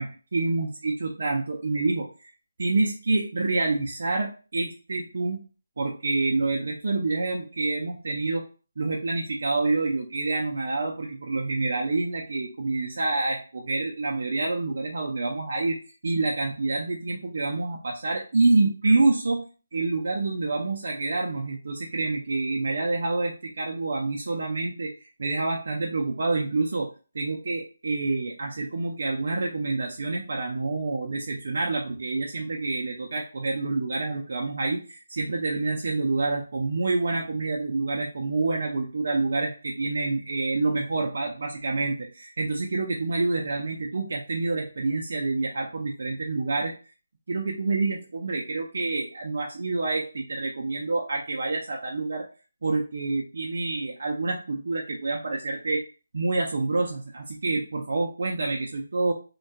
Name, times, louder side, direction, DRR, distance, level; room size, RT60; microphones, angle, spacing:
voice 1, 0.0-2.3 2.6-5.4 5.8-8.4 8.8-15.8 16.0-19.4 19.7-26.9 27.1-46.7 47.3-52.3 52.6-55.8 56.1-59.1, right 3 dB, 55° right, -1 dB, 0.4 m, -27 dB
2.2 x 2.2 x 2.7 m, 0.35 s
hypercardioid pair, 175°, 0 cm